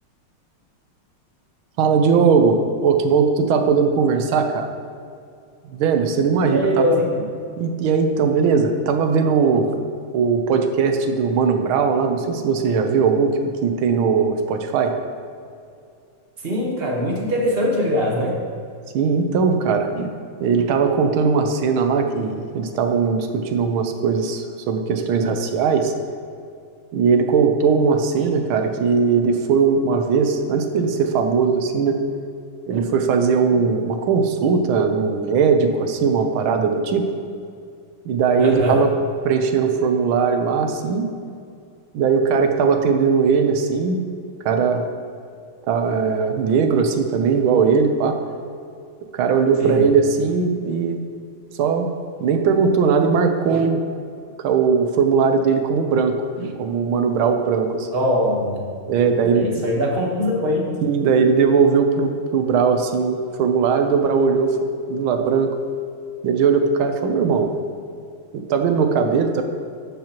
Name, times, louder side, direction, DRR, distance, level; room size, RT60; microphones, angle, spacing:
voice 1, 1.8-4.7 5.7-7.0 7.6-9.7 10.1-15.0 18.9-20.1 20.4-25.9 26.9-32.0 32.7-37.1 38.0-38.9 39.2-41.1 41.9-44.0 44.4-44.8 45.7-48.2 49.1-51.0 51.5-51.9 52.2-53.8 54.4-57.9 58.9-59.7 60.8-64.6 64.9-65.5 66.2-67.5 68.3-69.4, right 5 dB, 75° right, 6 dB, 1.5 m, -19 dB
voice 2, 6.4-7.3 16.4-18.4 38.4-38.9 49.6-49.8 57.9-58.6 59.3-60.7, equal, 35° right, -2 dB, 1.2 m, -21 dB
12.0 x 7.4 x 2.9 m, 2.4 s
omnidirectional pair, 2.4 m